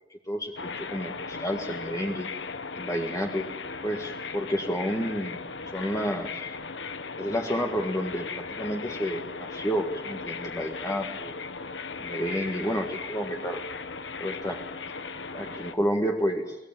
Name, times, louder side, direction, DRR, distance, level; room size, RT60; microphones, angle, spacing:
voice 1, 0.3-2.3 2.8-3.5 3.8-5.4 5.7-6.5 7.2-11.3 12.0-13.6 14.2-14.6 15.3-16.6, equal, 20° left, 2 dB, 1.7 m, -30 dB
sound 1, 0.6-15.7, left 4 dB, 80° left, 1.3 m, -37 dB
23.5 x 19.0 x 9.0 m, 1.0 s
head